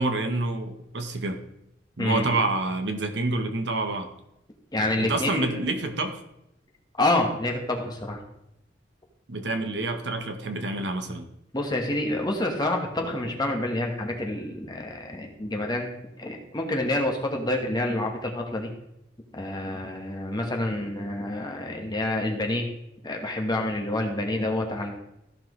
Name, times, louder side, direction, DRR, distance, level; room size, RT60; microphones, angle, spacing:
voice 1, 0.0-1.4 2.0-4.1 5.0-6.2 9.3-11.3, right 2 dB, 65° right, 7 dB, 1.0 m, -28 dB
voice 2, 2.0-2.4 4.7-5.5 7.0-8.2 11.5-15.9 16.2-18.7 19.3-22.6 23.0-24.9, left 1 dB, 20° left, 1 dB, 1.2 m, -28 dB
14.0 x 5.8 x 3.1 m, 0.83 s
head